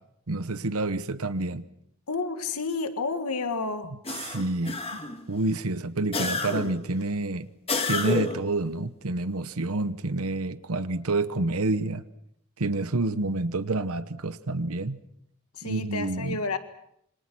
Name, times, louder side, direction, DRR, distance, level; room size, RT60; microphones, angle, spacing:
voice 1, 0.3-1.6 4.2-4.8 5.3-7.5 7.9-12.0 12.6-15.0 15.6-16.4, right 2 dB, 80° right, 12 dB, 1.1 m, -28 dB
voice 2, 2.1-4.0 15.5-16.6, left 4 dB, 90° left, 8 dB, 1.8 m, -30 dB
sound 1, 4.0-5.3 6.1-6.9 7.7-8.5, left 3 dB, 25° left, 1.8 m, -29 dB
27.5 x 26.0 x 6.2 m, 0.73 s
head